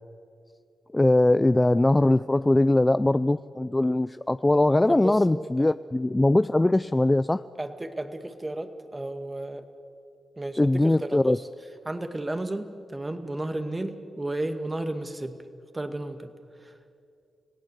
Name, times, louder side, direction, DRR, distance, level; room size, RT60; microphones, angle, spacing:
voice 1, 0.9-7.4 10.6-11.4, left 2 dB, 20° left, 14 dB, 0.5 m, -21 dB
voice 2, 4.9-5.2 7.6-9.6 10.4-11.4 11.9-15.4 15.7-16.3 16.6-16.7, right 1 dB, 25° right, 8 dB, 2.0 m, -33 dB
26.0 x 17.0 x 8.3 m, 2.4 s
supercardioid pair, 50°, 0 cm